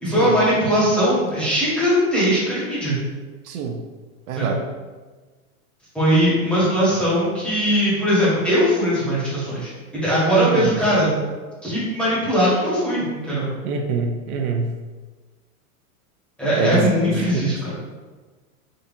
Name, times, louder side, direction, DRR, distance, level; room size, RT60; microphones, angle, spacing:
voice 1, 0.0-3.0 4.4-4.6 5.9-11.1 11.6-13.5 16.4-17.7, equal, 5° left, -11 dB, 1.3 m, -20 dB
voice 2, 3.4-3.8 4.3-4.6 10.4-10.7 13.6-14.7 16.6-17.5, right 4 dB, 75° right, 4 dB, 0.6 m, -25 dB
3.8 x 2.7 x 2.6 m, 1.3 s
supercardioid pair, 145°, 43 cm